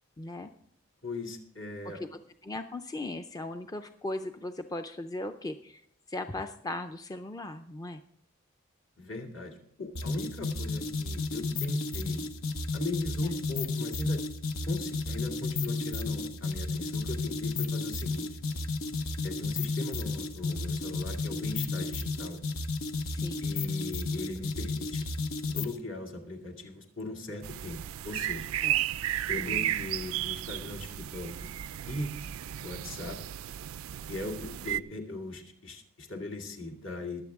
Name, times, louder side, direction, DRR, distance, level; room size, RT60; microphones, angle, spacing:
voice 1, 0.2-0.5 1.8-2.0 2.4-5.8 6.1-8.0 23.1-23.5 28.6-28.8 29.4-29.7, left 2 dB, 20° left, 8 dB, 0.4 m, -38 dB
voice 2, 1.0-2.0 9.0-12.3 12.7-14.2 14.6-18.4 19.2-22.4 23.4-25.1 25.5-28.5 29.3-31.5 31.9-32.1 32.6-33.2 34.1-37.2, left 2 dB, 65° left, 2 dB, 2.3 m, -39 dB
sound 1, 10.0-25.8, left 3 dB, 90° left, 1.0 m, -33 dB
sound 2, 27.4-34.8, right 12 dB, 85° right, 0.4 m, -34 dB
22.0 x 7.9 x 3.6 m, 0.69 s
head